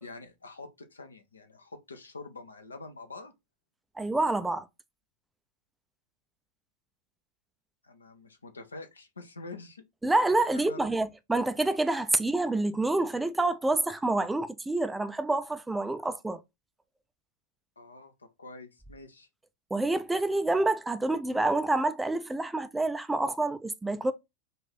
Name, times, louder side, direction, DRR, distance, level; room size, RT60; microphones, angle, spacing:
voice 1, 0.0-3.3 7.8-9.8 10.5-10.9 17.8-19.3, left 3 dB, 75° left, 0.7 m, -46 dB
voice 2, 4.0-4.7 10.0-16.4 19.7-24.1, right 2 dB, 5° right, 0.4 m, -27 dB
3.9 x 2.6 x 4.0 m
figure-of-eight pair, 90°, 0 cm